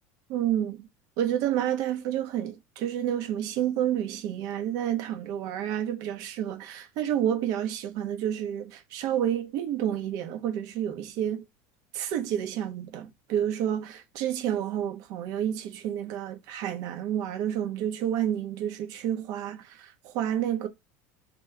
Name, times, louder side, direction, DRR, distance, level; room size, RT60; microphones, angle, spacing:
voice 1, 0.3-0.9 1.2-11.4 11.9-20.7, right 10 dB, 60° right, 1.1 m, -29 dB
4.2 x 3.5 x 2.7 m
supercardioid pair, 130°, 7 cm